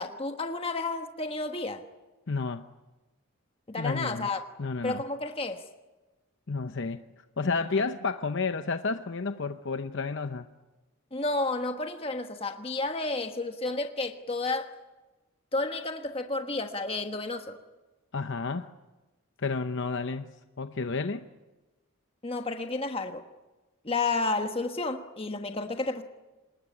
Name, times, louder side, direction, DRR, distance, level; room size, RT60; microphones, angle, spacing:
voice 1, 0.0-1.8 3.7-4.5 4.8-5.6 11.1-14.7 15.5-17.6 22.2-23.2 23.8-26.0, left 3 dB, 25° left, 1.3 m, -31 dB
voice 2, 2.3-2.7 3.8-4.3 4.6-5.0 6.5-7.0 7.4-10.5 18.1-18.7 19.4-20.3 20.6-21.3, left 4 dB, 55° left, 0.8 m, -31 dB
27.0 x 20.0 x 9.9 m
head